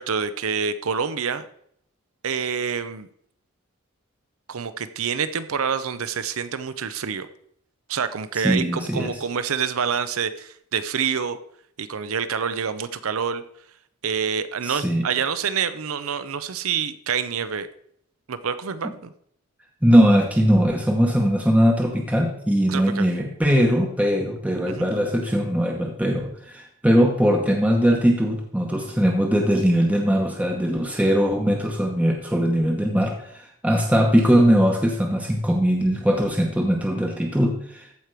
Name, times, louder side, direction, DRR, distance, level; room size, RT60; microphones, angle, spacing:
voice 1, 0.0-1.5 2.2-3.1 4.5-7.3 7.9-11.4 11.8-13.4 14.0-17.7 18.3-19.1 22.7-23.1 24.8-24.9, right 6 dB, 75° right, 13 dB, 0.6 m, -27 dB
voice 2, 8.4-9.1 14.6-15.1 18.8-18.9 19.8-37.9, equal, 5° right, 1 dB, 0.9 m, -20 dB
14.0 x 5.1 x 4.6 m, 0.69 s
head